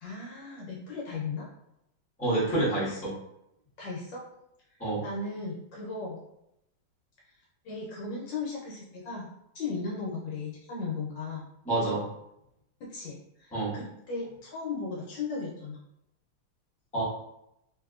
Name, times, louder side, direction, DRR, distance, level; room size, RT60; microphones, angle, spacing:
voice 1, 0.0-1.5 3.8-4.2 5.0-6.2 7.6-9.3 9.5-11.5 12.8-15.8, left 4 dB, 70° left, -4 dB, 1.2 m, -36 dB
voice 2, 2.2-3.1 4.8-5.0 11.6-12.1 13.5-13.8 16.9-17.0, right 2 dB, 5° left, -8 dB, 0.8 m, -28 dB
3.4 x 2.8 x 2.4 m, 0.82 s
omnidirectional pair, 2.3 m